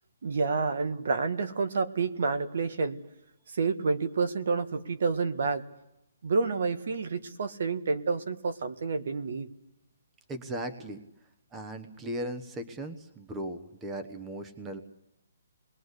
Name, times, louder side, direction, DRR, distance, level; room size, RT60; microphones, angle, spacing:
voice 1, 0.2-3.0 3.5-5.6 6.2-9.5, right 4 dB, 60° right, 10 dB, 1.8 m, -29 dB
voice 2, 10.3-11.0 11.5-14.8, right 1 dB, 10° right, 7 dB, 1.1 m, -37 dB
27.5 x 21.0 x 8.2 m, 0.86 s
hypercardioid pair, 175°, 0 cm